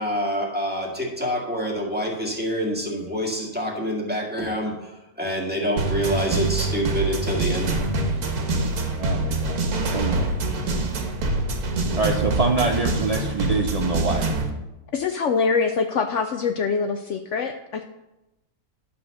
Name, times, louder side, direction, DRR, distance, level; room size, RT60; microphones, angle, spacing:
voice 1, 0.0-7.7, equal, 5° right, -2 dB, 1.8 m, -27 dB
sound 1, 5.8-14.5, right 2 dB, 85° right, 1.7 m, -25 dB
voice 2, 9.0-9.6 9.9-10.3 11.9-14.3, right 3 dB, 65° right, 3 dB, 0.3 m, -25 dB
voice 3, 14.9-17.9, left 5 dB, 65° left, 6 dB, 0.8 m, -24 dB
11.0 x 4.3 x 6.5 m, 0.95 s
omnidirectional pair, 1.6 m